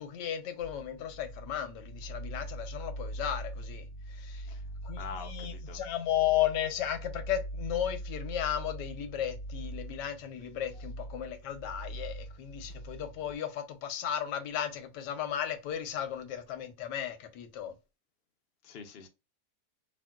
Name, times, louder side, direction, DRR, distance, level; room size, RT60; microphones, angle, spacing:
voice 1, 0.0-4.5 4.8-17.7, left 10 dB, 90° left, 1.3 m, -35 dB
sound 1, 0.6-13.3, right 1 dB, 20° left, 0.9 m, -42 dB
voice 2, 5.0-5.8 18.6-19.1, left 5 dB, 75° left, 0.5 m, -44 dB
3.6 x 2.2 x 2.2 m
omnidirectional pair, 1.8 m